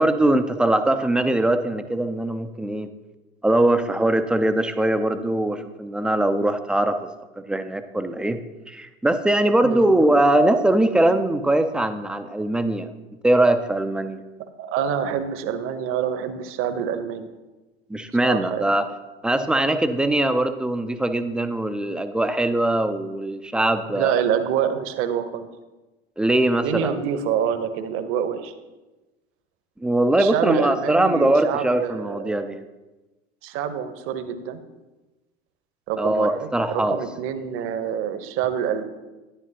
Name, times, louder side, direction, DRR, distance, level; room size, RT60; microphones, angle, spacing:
voice 1, 0.0-2.9 3.4-7.0 7.4-8.4 8.7-12.9 13.2-14.2 17.9-18.9 19.2-24.2 26.2-26.9 29.8-32.6 36.0-37.0, right 1 dB, 5° right, 9 dB, 0.4 m, -21 dB
voice 2, 14.6-17.3 18.2-18.7 23.9-25.5 26.5-28.5 30.1-32.4 33.4-34.6 35.9-38.8, right 8 dB, 40° right, 11 dB, 0.9 m, -26 dB
10.5 x 10.0 x 2.8 m, 1.1 s
figure-of-eight pair, 75°, 32 cm